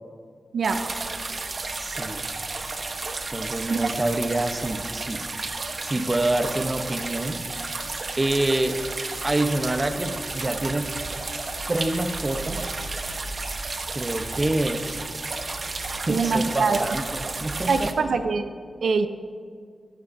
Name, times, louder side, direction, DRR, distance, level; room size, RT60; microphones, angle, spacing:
sound 1, 0.6-17.9, right 3 dB, 45° right, 1.1 m, -32 dB
voice 1, 1.8-2.2 3.3-5.5 5.8-7.7 8.2-8.8 9.2-10.9 11.7-12.6 13.9-15.0 15.6-15.8 16.1-17.9, right 2 dB, 25° right, 7 dB, 0.8 m, -27 dB
voice 2, 16.1-16.9 17.7-18.5 18.8-19.1, right 4 dB, 80° right, 8 dB, 0.6 m, -23 dB
18.0 x 15.5 x 2.7 m, 2.1 s
wide cardioid pair, 130°, 0 cm